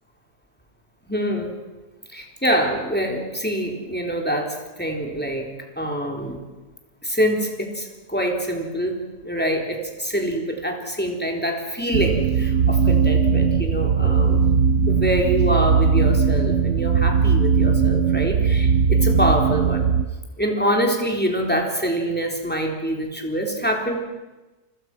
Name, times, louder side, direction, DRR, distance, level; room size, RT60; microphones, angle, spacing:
voice 1, 1.0-1.6 2.1-5.5 5.8-6.4 7.0-14.5 14.9-19.9 20.4-24.0, equal, 5° left, 1 dB, 3.9 m, -25 dB
sound 1, 11.9-20.1, right 6 dB, 50° right, 1.2 m, -19 dB
30.0 x 25.0 x 6.2 m, 1.1 s
omnidirectional pair, 1.7 m